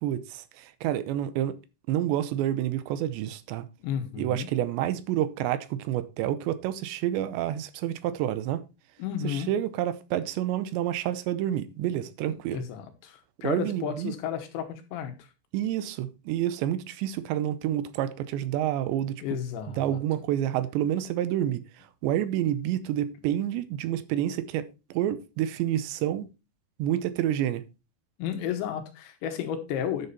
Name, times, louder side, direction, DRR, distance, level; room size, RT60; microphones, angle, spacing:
voice 1, 0.0-1.6 1.9-3.7 4.2-8.6 9.2-12.6 13.4-14.1 15.5-19.2 19.8-21.6 22.0-26.3 26.8-27.6, right 12 dB, 85° right, 3.1 m, -28 dB
voice 2, 3.8-4.5 9.0-9.5 12.5-15.3 19.2-20.0 28.2-30.1, left 9 dB, 90° left, 3.9 m, -32 dB
10.5 x 7.0 x 4.3 m
omnidirectional pair, 5.0 m